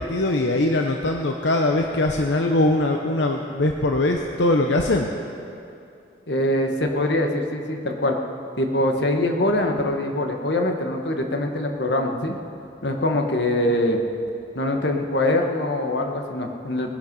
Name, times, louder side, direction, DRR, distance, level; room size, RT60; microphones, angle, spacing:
voice 1, 0.0-5.1, left 2 dB, 90° left, 3 dB, 0.9 m, -21 dB
voice 2, 6.3-8.2 8.6-12.4 12.8-14.0 14.5-16.9, left 1 dB, 75° left, 3 dB, 1.4 m, -23 dB
21.0 x 10.5 x 5.4 m, 2.6 s
head